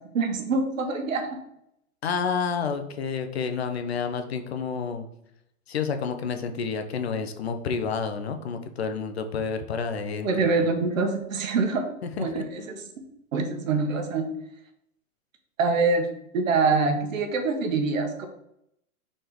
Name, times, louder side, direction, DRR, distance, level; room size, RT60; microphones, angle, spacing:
voice 1, 0.1-1.4 10.2-11.9 12.2-12.6 13.3-14.3 15.6-16.1 16.3-18.3, right 4 dB, 60° right, 5 dB, 1.3 m, -25 dB
voice 2, 2.0-5.1 5.7-10.7 12.0-12.5, left 5 dB, 45° left, 7 dB, 0.6 m, -30 dB
4.4 x 4.3 x 5.1 m, 0.76 s
hypercardioid pair, 175°, 44 cm